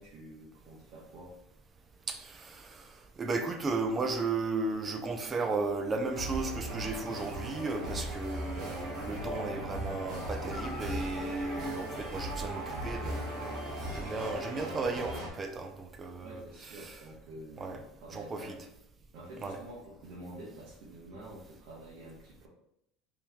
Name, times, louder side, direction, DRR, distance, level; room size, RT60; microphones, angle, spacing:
voice 1, 0.0-1.3 16.2-18.6 19.1-22.5, right 1 dB, 60° right, -5 dB, 1.1 m, -48 dB
voice 2, 2.1-2.9 3.2-16.4 16.8-16.9 17.6-17.8 18.1-18.6 19.4-19.6, right 3 dB, 25° right, 5 dB, 0.5 m, -35 dB
sound 1, 6.1-15.3, right 1 dB, 40° right, 1.4 m, -38 dB
Guitar, 10.5-13.0 16.9-17.0, left 3 dB, 40° left, 1.1 m, -51 dB
3.4 x 3.1 x 3.4 m, 0.77 s
supercardioid pair, 130°, 0 cm